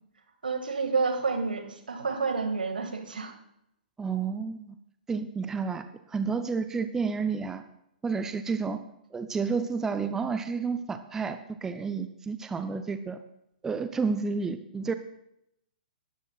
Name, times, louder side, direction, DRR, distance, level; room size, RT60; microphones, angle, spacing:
voice 1, 0.4-3.3, right 4 dB, 70° right, 5 dB, 2.0 m, -29 dB
voice 2, 4.0-4.7 5.1-7.6 8.0-8.8 9.1-13.2 13.6-14.9, right 5 dB, 10° right, 9 dB, 0.5 m, -30 dB
19.5 x 12.5 x 2.4 m, 0.80 s
figure-of-eight pair, 115°, 5 cm